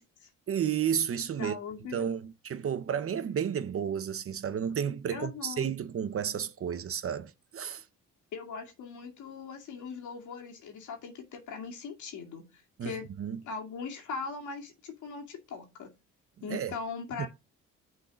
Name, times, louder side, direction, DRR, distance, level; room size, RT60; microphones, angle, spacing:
voice 1, 0.5-1.6 1.9-7.8 12.8-12.9 13.2-13.4 16.5-16.8 17.2-17.3, right 8 dB, 50° right, 0.8 m, -32 dB
voice 2, 1.4-2.0 5.1-5.7 8.3-13.1 13.4-15.9 16.4-17.3, left 5 dB, 75° left, 2.3 m, -40 dB
6.4 x 4.0 x 6.3 m
cardioid pair, 90°, 30 cm